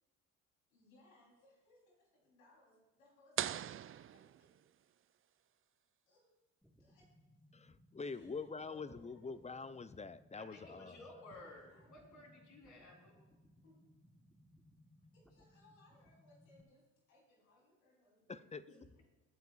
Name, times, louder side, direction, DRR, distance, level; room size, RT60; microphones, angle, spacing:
voice 1, 0.7-4.5 6.1-6.2 6.6-7.1 8.0-9.7 10.5-11.0 11.3-12.5 13.6-13.8 15.1-18.8, left 2 dB, 85° left, -3 dB, 3.9 m, -68 dB
sound 1, 3.4-5.0, right 11 dB, 35° right, 0.5 m, -41 dB
sound 2, 6.6-16.6, equal, ahead, 1.4 m, -66 dB
voice 2, 7.5-11.0 18.3-18.6, left 4 dB, 15° left, 14 dB, 0.6 m, -45 dB
voice 3, 10.4-13.3 18.7-19.0, left 2 dB, 50° left, 0 dB, 4.1 m, -56 dB
21.5 x 9.2 x 2.5 m, 1.1 s
hypercardioid pair, 55°, 39 cm